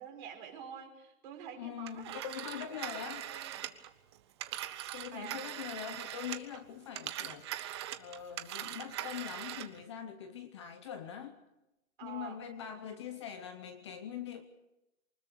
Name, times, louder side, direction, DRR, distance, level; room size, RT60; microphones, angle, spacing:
voice 1, 0.0-2.3 2.7-3.6 5.0-5.4 12.0-12.4, right 8 dB, 35° right, 2 dB, 4.8 m, -48 dB
voice 2, 1.6-3.3 4.9-7.5 8.0-11.4 12.0-14.4, left 9 dB, 20° left, 10 dB, 0.8 m, -43 dB
Telephone, 1.9-6.6 6.9-9.8, right 12 dB, 20° right, 0.8 m, -41 dB
24.5 x 20.0 x 6.3 m, 0.93 s
hypercardioid pair, 160°, 40 cm